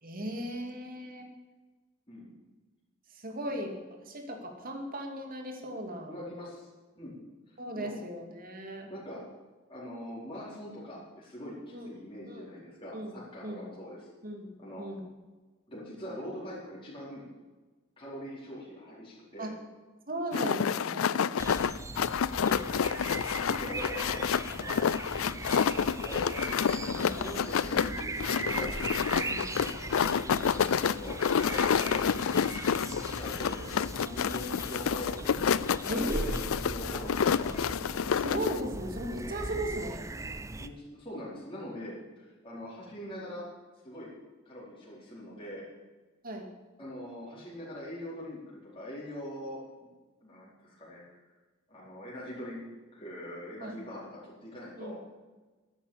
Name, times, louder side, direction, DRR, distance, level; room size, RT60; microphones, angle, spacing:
voice 1, 0.0-1.3 3.1-3.8 4.0-6.1 7.6-8.9 11.7-11.9 12.3-12.5 12.9-13.2 13.4-13.7 14.2-15.1 19.4-19.5 20.1-21.4 26.9-27.2 29.3-29.5 35.9-36.4 38.1-40.1 46.2-46.5 53.6-53.8 54.7-55.0, equal, 45° right, 3 dB, 2.5 m, -37 dB
voice 2, 6.1-6.7 6.9-7.1 7.5-8.0 8.9-9.2 9.7-14.1 14.6-14.9 15.7-17.2 18.0-19.5 22.4-22.9 23.5-24.9 25.5-26.3 26.8-28.7 30.0-31.2 32.9-37.5 40.6-43.4 43.8-44.1 44.4-45.6 46.8-49.9 50.2-51.0 51.7-52.6 52.9-55.0, left 1 dB, 25° left, -8 dB, 4.5 m, -43 dB
sound 1, 20.3-38.6, left 7 dB, 85° left, 0.4 m, -29 dB
sound 2, 21.4-40.7, right 2 dB, 15° right, 0.6 m, -39 dB
13.0 x 10.5 x 7.4 m, 1.3 s
head